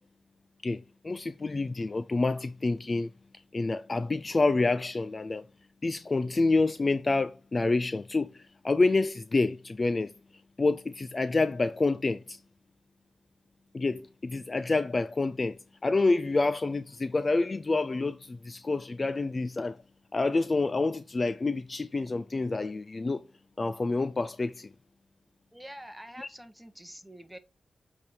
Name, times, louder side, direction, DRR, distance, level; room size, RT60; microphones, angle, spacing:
voice 1, 0.6-3.1 3.5-5.4 5.8-10.1 10.6-12.4 13.7-19.8 20.1-23.2 23.6-24.7 26.2-26.3, left 3 dB, 30° left, 0.4 m, -28 dB
voice 2, 25.5-27.4, equal, 5° right, 1.0 m, -46 dB
8.2 x 3.5 x 4.4 m
wide cardioid pair, 105°, 0 cm